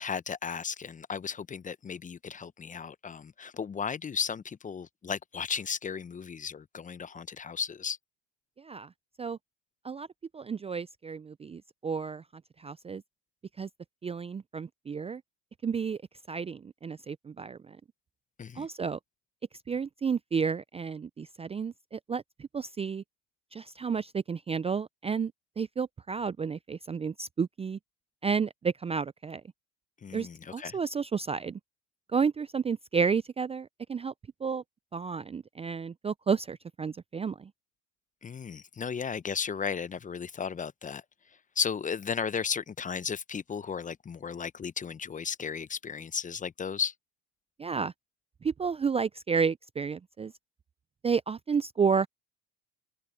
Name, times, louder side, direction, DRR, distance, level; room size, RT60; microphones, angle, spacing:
voice 1, 0.0-8.0 18.4-18.7 30.0-30.8 38.2-41.0 41.6-46.9, left 6 dB, 25° left, 0.8 m, -35 dB
voice 2, 8.6-8.9 9.2-9.4 9.8-10.1 10.3-12.2 12.6-13.0 13.6-13.7 14.0-15.2 15.6-16.0 16.3-17.8 18.6-19.0 19.7-22.2 22.5-23.0 23.5-27.8 28.2-29.4 30.1-31.6 32.1-34.1 34.4-34.6 34.9-37.5 47.6-47.9 48.4-50.3 51.0-52.1, right 5 dB, 20° right, 0.5 m, -31 dB
hypercardioid pair, 80°, 34 cm